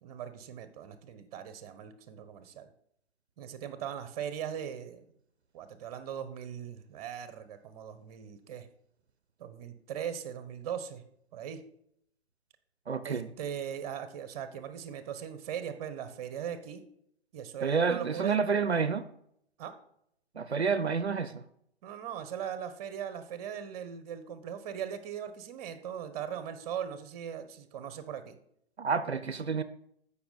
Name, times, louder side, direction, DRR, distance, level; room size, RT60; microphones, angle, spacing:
voice 1, 0.0-2.7 3.4-5.0 5.5-8.7 9.4-11.0 11.3-11.6 13.0-16.8 17.3-18.4 19.6-19.7 21.8-28.4, right 9 dB, 35° right, 1.1 m, -39 dB
voice 2, 12.9-13.3 17.6-19.0 20.4-21.4 28.8-29.6, right 5 dB, 85° right, 0.7 m, -29 dB
14.5 x 5.8 x 4.0 m
figure-of-eight pair, 120°, 32 cm